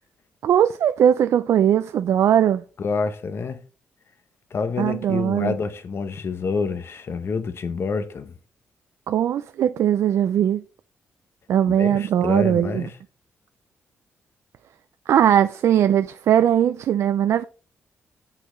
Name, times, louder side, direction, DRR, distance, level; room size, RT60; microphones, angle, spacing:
voice 1, 0.4-2.6 4.8-5.5 9.1-10.6 11.5-12.8 15.1-17.4, right 10 dB, 75° right, 0.4 m, -19 dB
voice 2, 2.8-3.6 4.5-8.3 11.7-12.9, left 4 dB, 55° left, 1.0 m, -27 dB
6.6 x 5.6 x 3.9 m
cardioid pair, 65°, 5 cm